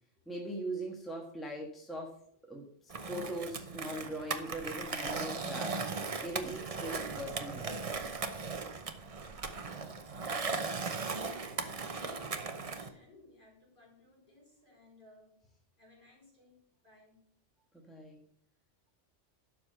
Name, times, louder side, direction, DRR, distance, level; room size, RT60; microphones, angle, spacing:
voice 1, 0.3-2.2 2.5-8.0 17.7-18.2, right 1 dB, ahead, 0 dB, 1.6 m, -41 dB
Skateboard, 2.9-12.9, right 4 dB, 35° right, 0.8 m, -38 dB
voice 2, 10.0-10.7 11.0-15.4 15.8-17.2 17.6-17.7, left 1 dB, 40° left, -2 dB, 5.0 m, -60 dB
12.0 x 5.2 x 6.7 m, 0.62 s
omnidirectional pair, 1.2 m